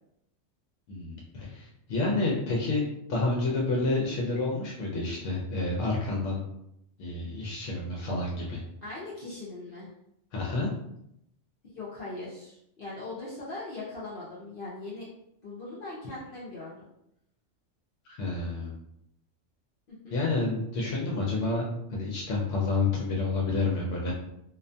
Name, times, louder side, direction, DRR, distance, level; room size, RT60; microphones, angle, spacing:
voice 1, 0.9-2.8 3.1-6.4 7.0-8.6 10.3-10.7 18.1-18.7 20.1-21.6 21.9-24.1, left 3 dB, 80° left, -3 dB, 0.9 m, -29 dB
voice 2, 8.8-9.9 11.6-15.1 15.4-16.8 19.9-20.2, left 2 dB, 55° left, -7 dB, 0.7 m, -40 dB
2.4 x 2.1 x 2.5 m, 0.79 s
omnidirectional pair, 1.3 m